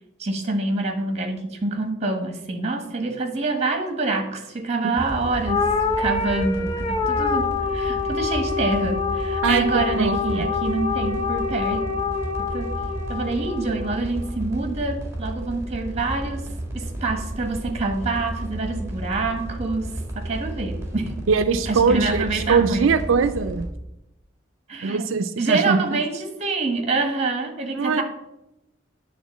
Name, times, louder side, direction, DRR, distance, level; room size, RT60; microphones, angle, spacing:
voice 1, 0.2-5.6 6.0-11.8 12.4-12.7 13.1-16.4 16.7-19.9 20.1-21.1 21.7-22.9 24.7-25.0 25.4-28.0, right 3 dB, 35° right, 5 dB, 1.3 m, -26 dB
sound 1, 5.0-23.7, right 1 dB, 15° right, 1.7 m, -33 dB
sound 2, 5.5-14.0, left 5 dB, 25° left, 0.7 m, -26 dB
voice 2, 9.4-10.4 21.3-23.6 24.8-26.0 27.7-28.0, right 5 dB, 85° right, 10 dB, 0.5 m, -22 dB
9.4 x 3.8 x 7.2 m, 0.89 s
head